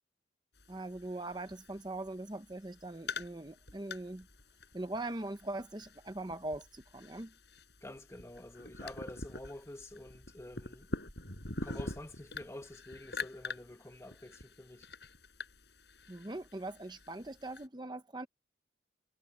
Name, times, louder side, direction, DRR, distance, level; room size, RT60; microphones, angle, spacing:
sound 1, 0.5-17.7, left 3 dB, 60° left, 5.5 m, -46 dB
voice 1, 0.7-4.3 4.7-7.3 16.1-18.3, right 2 dB, 20° right, 0.8 m, -41 dB
voice 2, 7.8-10.9 11.6-14.9, left 1 dB, 15° left, 1.2 m, -48 dB
head